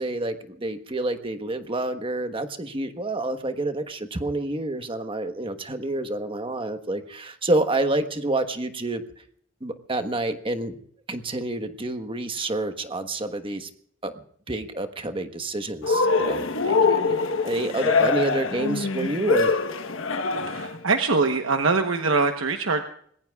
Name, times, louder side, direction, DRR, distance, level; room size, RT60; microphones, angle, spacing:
voice 1, 0.0-9.0 9.6-10.8 11.1-13.7 14.0-14.1 14.5-19.5, right 2 dB, 25° right, 8 dB, 1.3 m, -28 dB
Cheering, 15.8-20.8, left 4 dB, 75° left, 1.2 m, -24 dB
voice 2, 20.4-22.8, right 4 dB, 80° right, 5 dB, 1.1 m, -23 dB
26.5 x 21.0 x 2.4 m, 0.63 s
head